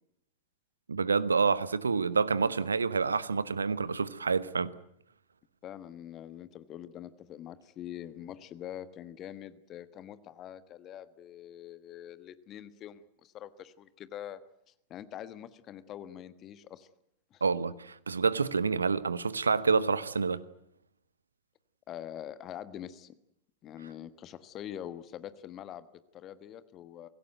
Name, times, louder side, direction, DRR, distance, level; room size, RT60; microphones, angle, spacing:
voice 1, 0.9-4.7 17.4-20.4, right 5 dB, 75° right, 1.0 m, -28 dB
voice 2, 5.6-14.4 14.7-16.9 17.3-17.4 21.9-23.1 23.6-27.1, left 11 dB, 30° left, 1.3 m, -44 dB
24.5 x 17.0 x 9.2 m
figure-of-eight pair, 90°, 0 cm